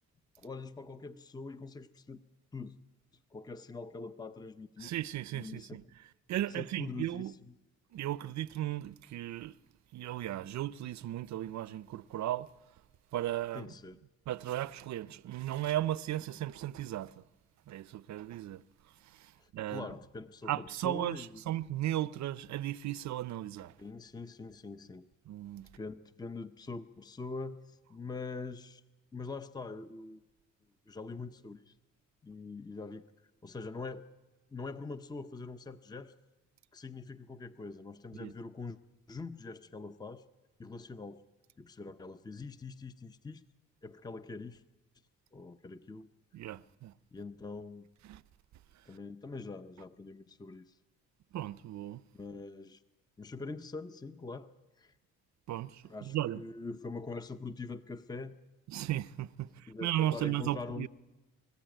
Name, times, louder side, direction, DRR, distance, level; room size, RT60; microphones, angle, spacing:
voice 1, 0.4-2.2 2.5-2.8 3.3-4.9 5.3-5.8 6.5-7.3 13.5-14.0 19.4-21.6 23.8-25.1 25.8-28.8 29.1-30.2 30.9-31.7 32.2-33.0 33.4-34.0 34.5-36.1 36.7-38.8 39.1-40.3 40.6-41.2 41.6-43.4 43.8-44.6 45.3-46.1 47.1-47.9 48.9-50.8 52.1-52.8 53.2-54.5 54.8-54.9 55.8-58.3 59.7-60.9, left 3 dB, 15° left, 0.7 m, -43 dB
voice 2, 4.8-5.8 6.3-7.3 7.9-9.6 9.9-12.5 13.1-13.7 14.3-17.2 17.7-18.6 19.0-19.9 20.5-23.7 25.3-25.7 38.1-38.3 46.3-46.9 48.0-48.2 51.3-52.0 55.5-56.4 58.7-60.9, right 13 dB, 65° right, 0.7 m, -36 dB
24.5 x 14.5 x 9.1 m
cardioid pair, 90°, 30 cm